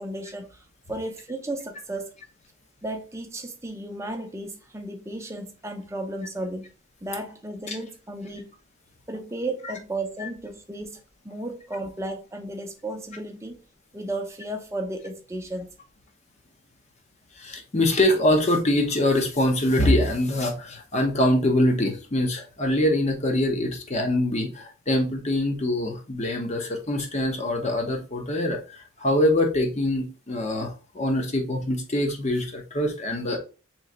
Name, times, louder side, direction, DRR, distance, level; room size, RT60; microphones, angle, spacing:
voice 1, 0.0-2.1 2.8-6.7 7.0-8.5 9.1-13.6 13.9-15.7, right 1 dB, 15° right, 0.6 m, -34 dB
voice 2, 17.4-33.4, left 1 dB, 35° left, 0.8 m, -24 dB
3.1 x 3.1 x 3.8 m
head